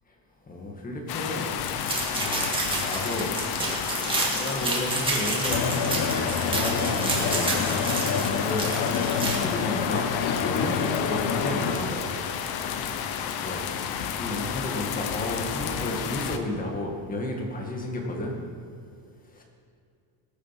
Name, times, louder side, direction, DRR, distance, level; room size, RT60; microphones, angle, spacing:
voice 1, 0.5-1.5 1.8-3.8 4.2-7.6 8.3-8.8 9.2-12.2 12.8-13.7 14.1-18.4 19.3-19.4, left 1 dB, 20° left, 0 dB, 2.0 m, -33 dB
sound 1, 1.1-16.4, left 8 dB, 55° left, 1.0 m, -32 dB
sound 2, 1.9-9.4, right 2 dB, 10° right, 2.1 m, -29 dB
sound 3, 5.5-11.8, left 6 dB, 85° left, 1.2 m, -27 dB
20.0 x 7.5 x 6.0 m, 2.4 s
cardioid pair, 170°, 45 cm